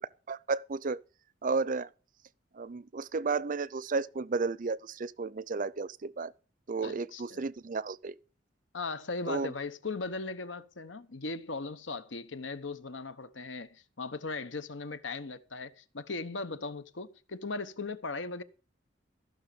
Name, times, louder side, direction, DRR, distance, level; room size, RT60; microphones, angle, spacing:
voice 1, 0.3-1.0 1.4-1.9 2.5-6.3 6.7-8.1 9.3-9.5, right 4 dB, 45° right, 0.5 m, -33 dB
voice 2, 6.8-7.4 8.7-18.4, left 3 dB, 80° left, 1.0 m, -38 dB
14.5 x 6.4 x 6.9 m
head